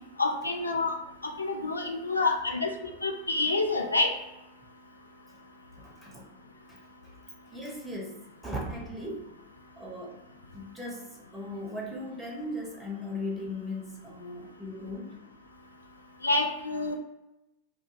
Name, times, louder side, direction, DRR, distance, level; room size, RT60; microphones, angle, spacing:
voice 1, 0.2-0.9 1.4-2.7 3.0-4.1 16.2-17.0, left 3 dB, 80° left, 1 dB, 0.4 m, -27 dB
voice 2, 2.6-2.9 5.8-6.3 6.7-7.1 7.5-9.3 9.8-10.2 10.5-15.2, left 1 dB, 5° right, -3 dB, 0.7 m, -38 dB
2.1 x 2.1 x 3.0 m, 0.95 s
figure-of-eight pair, 90°, 0 cm